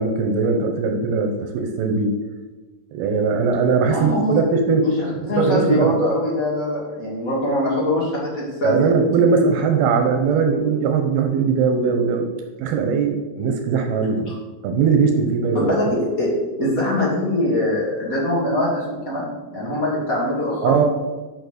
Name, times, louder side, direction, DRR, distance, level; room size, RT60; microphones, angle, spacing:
voice 1, 0.0-2.1 2.9-4.9 5.3-5.9 8.6-12.3 12.6-14.3 14.6-15.7 20.6-20.9, right 5 dB, 90° right, 4 dB, 2.8 m, -20 dB
voice 2, 3.8-4.4 4.8-8.9 15.5-16.3 16.6-20.9, left 1 dB, 30° left, -5 dB, 2.0 m, -22 dB
7.0 x 6.2 x 6.6 m, 1.2 s
omnidirectional pair, 4.3 m